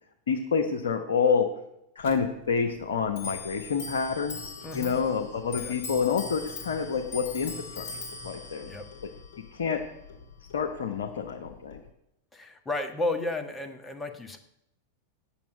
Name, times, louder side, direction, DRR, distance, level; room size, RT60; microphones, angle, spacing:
voice 1, 0.3-1.5 1.9-7.9 8.2-8.7 9.5-9.8 10.5-11.8, left 6 dB, 65° left, 3 dB, 1.0 m, -28 dB
Clock, 2.0-11.9, left 4 dB, 50° left, 1.7 m, -42 dB
voice 2, 4.6-5.0 5.5-5.8 8.6-8.8 12.3-14.4, left 2 dB, 15° left, 7 dB, 1.4 m, -33 dB
9.0 x 7.3 x 9.0 m, 0.82 s
figure-of-eight pair, 90°, 0 cm